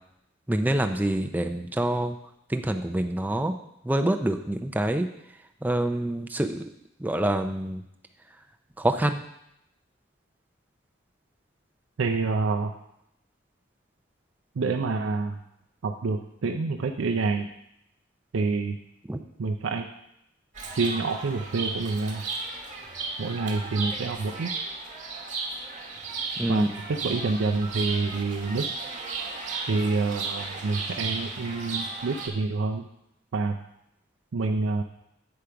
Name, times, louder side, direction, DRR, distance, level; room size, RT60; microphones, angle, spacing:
voice 1, 0.5-2.1 2.5-3.6 3.9-5.1 5.6-6.6 7.0-7.8 8.8-9.2 19.1-19.2 26.4-26.7, right 1 dB, 10° right, 6 dB, 0.4 m, -26 dB
voice 2, 12.0-12.7 14.6-15.4 15.8-17.5 18.3-18.8 19.4-19.9 20.7-22.3 23.2-24.5 26.5-28.7 29.7-32.9 33.3-33.6 34.3-34.8, right 3 dB, 75° right, 4 dB, 0.5 m, -27 dB
Chirp tweet, 20.5-32.3, right 4 dB, 40° right, 1.1 m, -35 dB
8.0 x 5.0 x 5.8 m, 0.79 s
head